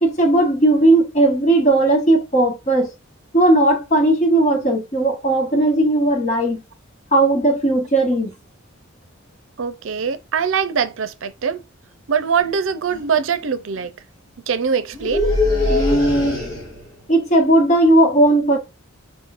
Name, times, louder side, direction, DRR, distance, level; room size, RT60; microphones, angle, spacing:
voice 1, 0.0-2.9 3.3-6.6 7.1-8.3 15.7-16.4 17.1-18.6, right 1 dB, 35° left, 1.2 m, -16 dB
voice 2, 9.6-11.6 12.1-13.9 14.5-15.4, right 6 dB, 70° right, 0.5 m, -22 dB
sound 1, 12.4-12.6 12.9-13.2 14.9-16.9, left 2 dB, 20° left, 1.9 m, -22 dB
4.7 x 3.8 x 2.4 m
head